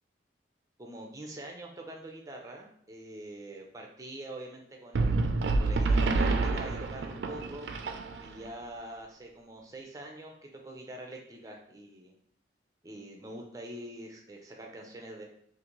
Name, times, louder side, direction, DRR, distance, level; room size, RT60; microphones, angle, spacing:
voice 1, 0.8-5.3 5.6-7.7 8.2-12.1 12.8-15.2, right 1 dB, 20° right, 1 dB, 0.5 m, -44 dB
sound 1, 4.9-8.5, right 3 dB, 70° right, 0.4 m, -28 dB
4.0 x 2.5 x 3.0 m, 0.69 s
head